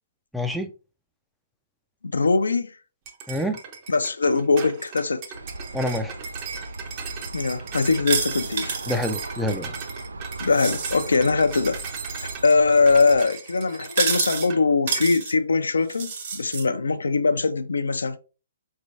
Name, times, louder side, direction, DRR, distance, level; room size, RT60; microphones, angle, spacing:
voice 1, 0.3-0.7 3.3-3.6 5.7-6.1 8.9-9.7, left 1 dB, ahead, 0.4 m, -27 dB
voice 2, 2.0-2.7 3.9-5.2 7.3-8.8 10.4-11.8 12.4-18.2, left 4 dB, 85° left, 0.4 m, -21 dB
sound 1, 3.1-14.6 14.9-15.2, right 6 dB, 35° right, 0.7 m, -38 dB
Aircraft, 5.3-13.2, right 2 dB, 85° right, 0.3 m, -38 dB
sound 2, 8.1-9.1 10.5-11.1 11.6-12.0 13.9-14.5 14.9-15.3 15.9-16.6, right 6 dB, 60° right, 1.6 m, -28 dB
4.3 x 3.2 x 2.6 m
hypercardioid pair, 135°, 0 cm